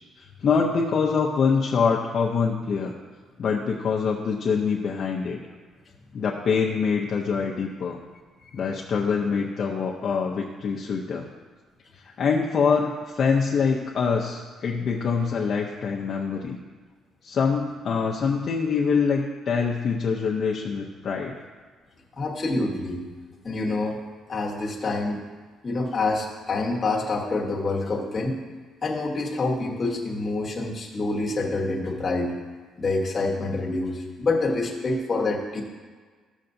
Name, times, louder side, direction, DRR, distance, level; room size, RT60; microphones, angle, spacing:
voice 1, 0.2-2.9 3.4-5.4 6.1-8.0 8.5-11.3 11.9-16.6 17.2-21.3, left 5 dB, 35° left, -2 dB, 0.6 m, -25 dB
voice 2, 22.2-23.0 23.4-24.0 24.3-25.2 25.6-28.4 28.8-32.3 32.8-35.6, left 2 dB, 20° left, -3 dB, 1.2 m, -27 dB
14.0 x 6.7 x 2.7 m, 1.5 s
cardioid pair, 180°, 0 cm